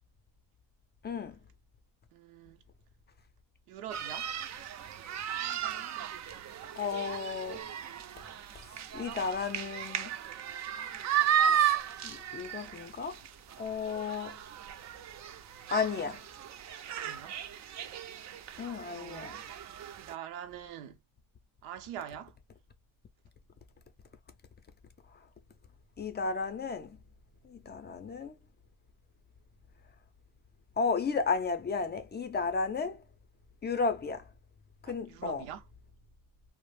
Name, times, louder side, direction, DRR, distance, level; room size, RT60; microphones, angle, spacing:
voice 1, 1.0-1.4 6.7-7.6 8.9-10.1 11.5-13.2 13.6-14.4 15.7-16.2 18.6-19.4 26.0-27.0 27.4-28.3 30.8-33.0 33.6-34.3 34.9-35.4, left 5 dB, 25° left, 0.4 m, -33 dB
voice 2, 2.1-2.6 3.7-4.3 17.0-17.4 18.8-19.3 20.0-21.0 21.6-22.4 34.8-35.6, right 10 dB, 85° right, 0.7 m, -44 dB
sound 1, 3.9-20.1, right 10 dB, 40° right, 0.4 m, -35 dB
2.4 x 2.0 x 3.2 m
supercardioid pair, 85°, 45 cm